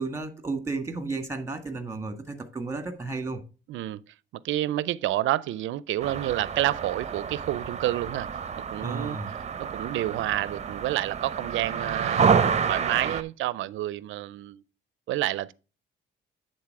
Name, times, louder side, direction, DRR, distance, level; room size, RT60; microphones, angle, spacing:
voice 1, 0.0-3.4 8.8-9.3, right 3 dB, 15° right, 1.8 m, -33 dB
voice 2, 3.7-4.0 4.4-8.3 8.7-9.2 9.6-14.6 15.1-15.5, right 14 dB, 75° right, 0.4 m, -29 dB
sound 1, 6.0-13.2, right 6 dB, 35° right, 0.6 m, -28 dB
9.4 x 3.9 x 4.7 m
cardioid pair, 90°, 20 cm